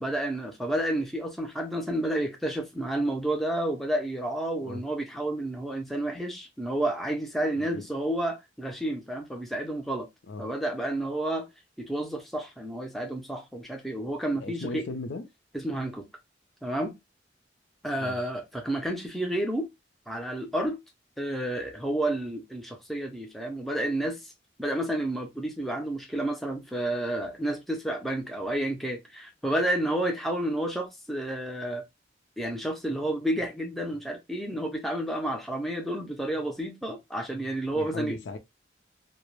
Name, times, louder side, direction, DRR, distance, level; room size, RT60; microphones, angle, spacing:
voice 1, 0.0-10.1 10.4-11.5 11.8-14.9 15.5-16.1 16.6-16.9 17.8-19.7 20.1-20.8 21.2-24.3 24.6-31.8 32.4-38.2, right 1 dB, ahead, 0.4 m, -30 dB
voice 2, 7.5-7.9 10.3-10.5 14.3-15.3 18.0-18.2 37.7-38.4, left 2 dB, 85° left, 0.5 m, -37 dB
2.2 x 2.0 x 3.0 m
head